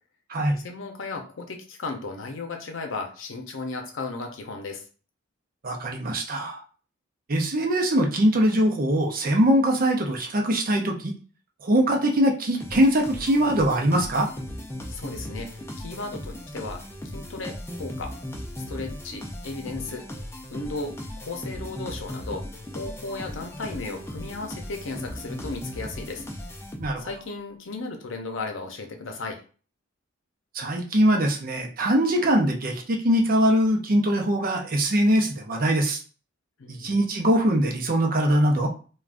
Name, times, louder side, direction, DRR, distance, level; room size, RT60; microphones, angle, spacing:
voice 1, 0.6-4.8 14.9-18.2 18.7-20.1 20.5-22.5 22.7-26.2 27.0-29.4 36.6-37.0, left 3 dB, 75° left, 5 dB, 0.6 m, -35 dB
voice 2, 5.6-6.6 7.3-11.1 11.6-14.3 26.8-27.1 30.5-36.0 36.7-38.7, right 1 dB, 45° right, 2 dB, 0.6 m, -22 dB
sound 1, 12.6-27.2, left 1 dB, 15° left, 0.4 m, -37 dB
3.4 x 2.3 x 2.5 m, 0.38 s
head